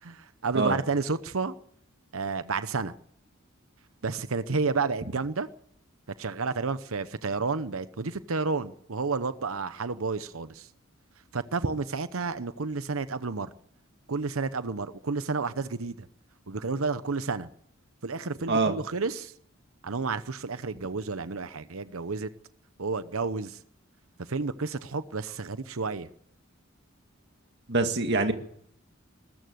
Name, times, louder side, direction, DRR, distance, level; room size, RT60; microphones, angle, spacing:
voice 1, 0.0-1.5 2.1-3.0 4.0-5.5 6.2-10.7 11.3-13.5 14.1-16.1 16.5-17.5 18.0-19.3 19.8-22.3 22.8-23.6 24.2-26.1, right 4 dB, 80° right, 13 dB, 0.9 m, -31 dB
voice 2, 27.7-28.3, right 3 dB, 55° right, 6 dB, 2.0 m, -24 dB
20.5 x 14.0 x 9.3 m, 0.68 s
head